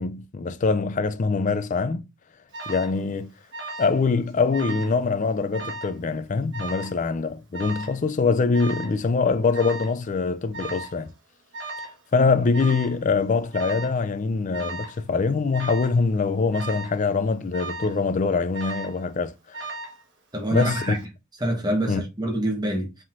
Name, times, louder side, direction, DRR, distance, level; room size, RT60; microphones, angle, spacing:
voice 1, 0.0-2.0 2.7-3.3 3.8-11.1 12.1-19.6 20.5-21.0 21.9-22.0, left 4 dB, 35° left, 0.4 m, -24 dB
Alarm, 2.5-3.0 3.5-4.0 4.3-5.0 5.5-6.0 6.5-7.0 7.5-8.0 8.5-9.0 9.5-10.0 10.5-11.0 11.5-12.0 12.5-13.0 13.5-14.0 14.5-15.0 15.5-16.0 16.5-17.0 17.5-18.0 18.5-19.0 19.5-20.0 20.5-21.0, right 2 dB, 50° right, 1.3 m, -36 dB
voice 2, 20.3-21.0 21.4-23.0, right 1 dB, 20° right, 1.1 m, -26 dB
5.1 x 3.6 x 2.5 m
head